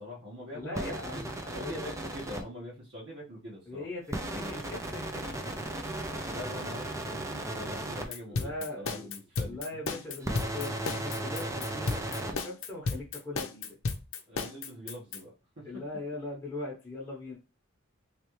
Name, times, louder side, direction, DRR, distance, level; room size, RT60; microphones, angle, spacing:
voice 1, 0.0-1.3 1.5-3.9 4.3-4.5 6.3-8.5 8.7-9.6 14.3-15.3 15.6-15.7, left 1 dB, 60° right, -6 dB, 1.4 m, -43 dB
voice 2, 0.5-1.7 3.7-5.8 8.3-9.1 9.4-13.8 15.6-17.4, left 2 dB, 15° left, -6 dB, 1.1 m, -40 dB
sound 1, 0.7-2.4 4.1-8.0 10.2-12.3, right 1 dB, 15° right, 0.6 m, -36 dB
sound 2, 8.1-15.2, left 4 dB, 65° left, 0.7 m, -34 dB
3.3 x 3.3 x 3.1 m, 0.30 s
head